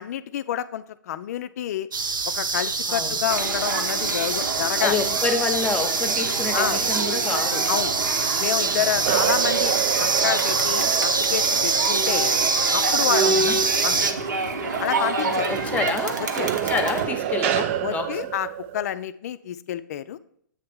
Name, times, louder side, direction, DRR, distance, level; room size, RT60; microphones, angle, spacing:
voice 1, 0.0-1.9 2.3-5.0 6.5-6.8 7.7-7.9 8.4-12.3 12.7-13.6 13.8-14.1 14.8-15.5 16.3-16.5 17.5-18.5 18.7-20.2, left 11 dB, 55° left, 14 dB, 0.4 m, -29 dB
sound 1, 1.9-14.1, right 4 dB, 85° right, 0.7 m, -24 dB
voice 2, 2.9-3.2 4.8-7.7 13.2-13.6 15.4-16.2 16.6-18.2, left 4 dB, 15° left, 8 dB, 0.8 m, -28 dB
Crowd, 3.3-17.0, right 4 dB, 65° right, 1.0 m, -28 dB
sound 2, 9.1-13.9 14.3-14.7 16.3-18.9, right 12 dB, 40° right, 0.4 m, -29 dB
8.6 x 3.3 x 5.5 m, 0.66 s
figure-of-eight pair, 120°, 11 cm